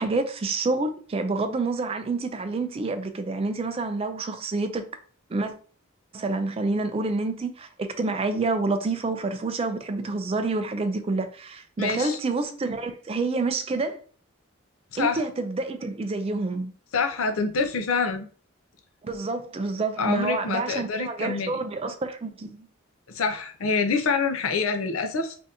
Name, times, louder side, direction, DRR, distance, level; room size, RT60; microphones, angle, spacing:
voice 1, 0.0-4.8 5.3-5.5 6.1-14.0 15.0-16.7 19.0-22.7, right 3 dB, 25° right, 0.3 m, -28 dB
voice 2, 11.8-12.2 14.9-15.2 16.9-18.3 20.0-21.6 23.1-25.4, left 4 dB, 80° left, 0.6 m, -26 dB
3.4 x 2.6 x 2.7 m
head